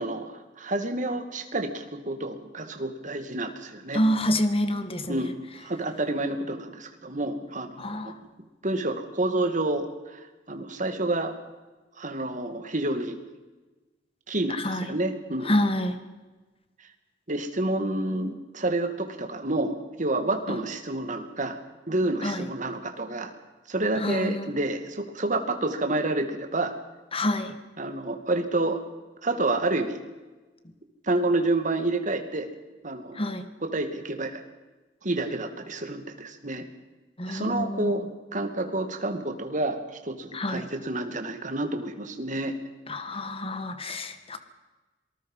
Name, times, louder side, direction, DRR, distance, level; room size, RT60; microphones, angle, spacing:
voice 1, 0.0-4.0 5.1-8.1 8.6-10.2 10.5-11.4 12.0-13.2 14.3-15.5 17.3-21.6 21.9-23.3 23.7-26.7 27.8-28.8 29.2-30.0 31.0-32.5 32.8-33.2 33.6-34.4 35.0-36.6 37.3-38.1 38.3-42.6, right 2 dB, 45° right, 6 dB, 2.4 m, -29 dB
voice 2, 3.9-5.2 7.8-8.1 14.5-15.0 15.5-16.0 20.5-20.6 22.2-22.5 24.0-24.6 27.1-27.5 33.2-33.5 37.2-38.0 40.3-40.7 42.9-44.4, left 1 dB, 30° left, 9 dB, 1.8 m, -27 dB
27.0 x 19.5 x 5.6 m, 1.2 s
head